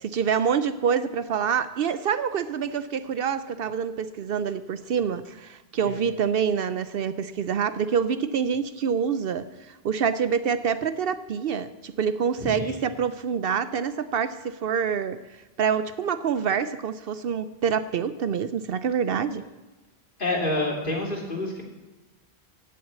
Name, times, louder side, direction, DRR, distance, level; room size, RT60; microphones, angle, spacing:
voice 1, 0.0-19.4, right 7 dB, 65° right, 13 dB, 0.7 m, -26 dB
voice 2, 12.4-12.8 20.2-21.6, left 2 dB, 50° left, -1 dB, 2.9 m, -28 dB
16.0 x 6.4 x 8.2 m, 1.1 s
omnidirectional pair, 1.1 m